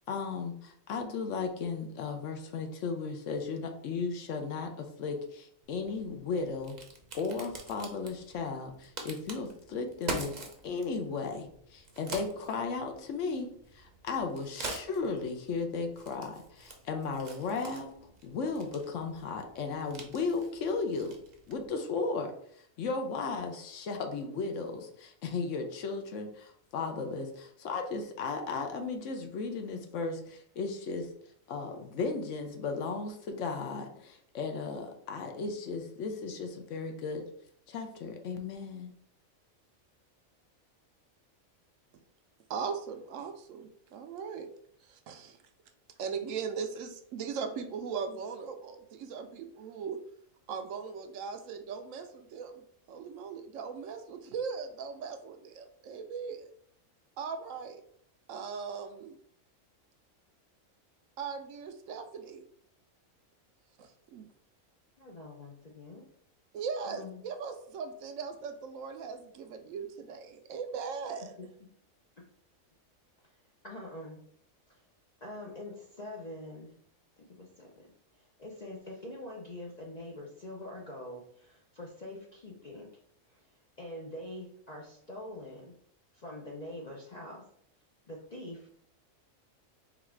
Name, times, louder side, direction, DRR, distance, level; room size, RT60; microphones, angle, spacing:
voice 1, 0.1-6.8 7.1-10.3 10.6-13.5 13.7-17.9 18.2-21.2 21.5-22.3 22.8-31.1 31.5-37.2 37.7-38.9, left 4 dB, 70° left, 5 dB, 1.0 m, -35 dB
Crack, 5.6-21.7, right 2 dB, 40° right, 0.7 m, -45 dB
voice 2, 42.5-44.5 44.9-45.4 46.0-50.0 50.5-56.5 57.2-57.8 58.3-59.2 61.2-62.4 63.8-64.3 66.5-71.3, right 6 dB, 75° right, 7 dB, 0.9 m, -39 dB
voice 3, 65.0-66.1 66.8-67.2 71.4-71.5 72.2-72.3 73.6-74.2 74.7-74.8 75.2-76.8 77.2-77.9 78.1-82.9 83.3-83.5 83.8-85.7 86.1-87.4 88.1-88.7, left 1 dB, 50° left, -1 dB, 0.5 m, -44 dB
4.0 x 2.4 x 4.3 m, 0.66 s
omnidirectional pair, 1.4 m